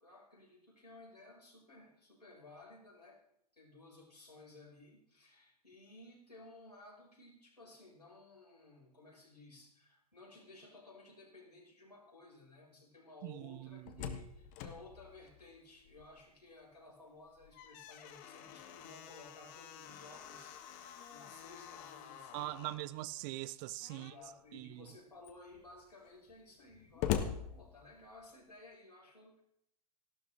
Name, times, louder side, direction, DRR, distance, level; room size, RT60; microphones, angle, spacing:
voice 1, 0.0-3.2 3.5-22.8 23.9-29.4, left 2 dB, 90° left, 5.3 m, -57 dB
voice 2, 13.2-14.2 22.3-24.1 24.5-24.9, right 18 dB, 30° right, 0.4 m, -43 dB
Slam, 13.6-16.4 16.7-16.8 17.3-22.9 23.8-24.3 24.9-25.0 25.2-28.3, left 9 dB, 35° left, 1.2 m, -44 dB
15.0 x 12.0 x 3.4 m
figure-of-eight pair, 100°, 20 cm